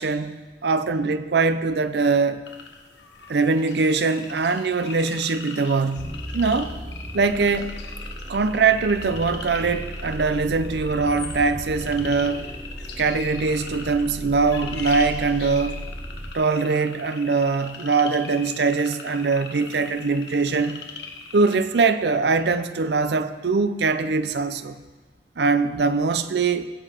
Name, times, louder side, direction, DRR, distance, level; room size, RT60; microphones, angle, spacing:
voice 1, 0.0-2.4 3.3-6.8 7.1-7.8 8.3-12.5 13.0-15.8 16.3-20.8 21.3-24.8 25.4-26.7, right 4 dB, 70° right, 0.5 m, -22 dB
sound 1, 2.5-21.6, left 5 dB, 75° left, 1.2 m, -40 dB
sound 2, 6.0-16.3, equal, 5° right, 0.4 m, -36 dB
16.0 x 6.9 x 4.5 m
head